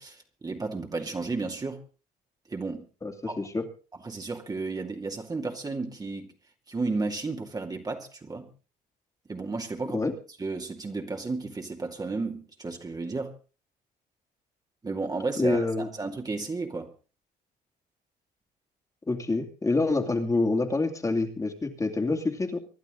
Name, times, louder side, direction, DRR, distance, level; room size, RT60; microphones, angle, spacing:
voice 1, 0.0-1.8 2.5-2.9 3.3-3.5 4.0-6.3 6.7-8.5 9.3-10.0 10.4-13.3 14.8-16.9, right 3 dB, 20° right, 2.4 m, -33 dB
voice 2, 3.0-3.6 9.9-10.1 15.4-15.9 19.1-22.6, left 3 dB, 20° left, 2.7 m, -27 dB
25.5 x 11.5 x 3.9 m
cardioid pair, 110°, 17 cm